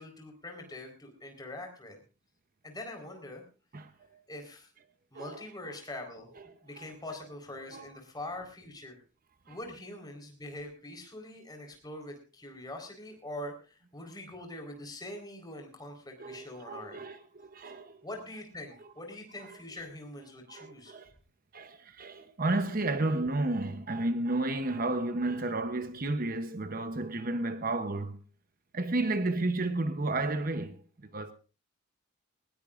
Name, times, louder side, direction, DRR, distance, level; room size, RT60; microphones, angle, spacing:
voice 1, 0.0-2.0 2.6-3.4 4.3-4.7 5.1-6.3 6.6-9.0 9.5-17.0 18.0-20.9, left 1 dB, 20° left, 4.1 m, -43 dB
voice 2, 3.7-4.1 5.1-5.7 6.8-6.9 7.7-7.9 9.5-9.6 16.2-18.0 19.4-19.6 20.5-21.1 21.5-28.2 28.7-30.8 31.1-31.3, right 2 dB, 40° right, 0.8 m, -32 dB
20.0 x 19.0 x 2.5 m
head